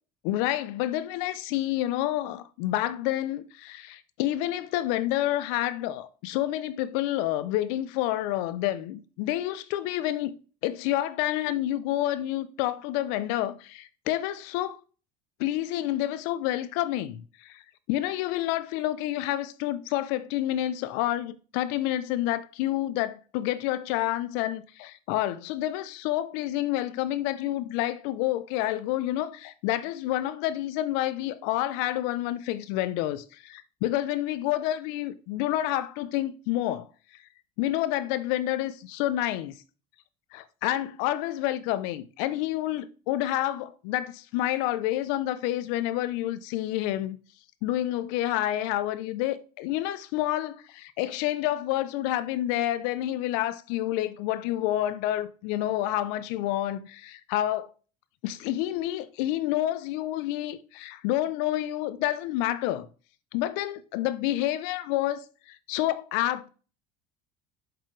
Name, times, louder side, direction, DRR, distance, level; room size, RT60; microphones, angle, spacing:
voice 1, 0.2-10.3 10.6-14.8 15.4-17.6 17.9-36.9 37.6-39.5 40.3-47.2 47.6-57.7 58.2-62.9 63.3-66.5, left 14 dB, 75° left, 0.8 m, -29 dB
7.8 x 6.8 x 3.3 m
supercardioid pair, 105°, 19 cm